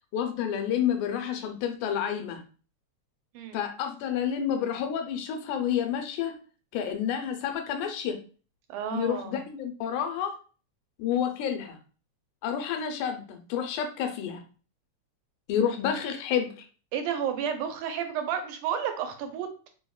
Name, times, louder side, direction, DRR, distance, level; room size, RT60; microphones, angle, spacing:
voice 1, 0.1-2.4 3.5-6.3 6.7-8.2 8.9-10.4 11.0-11.8 12.4-14.4 15.5-16.6, left 8 dB, 85° left, 5 dB, 2.0 m, -29 dB
voice 2, 8.7-9.3 16.9-19.7, right 8 dB, 90° right, 6 dB, 2.1 m, -31 dB
4.7 x 2.1 x 2.2 m, 0.37 s
omnidirectional pair, 3.4 m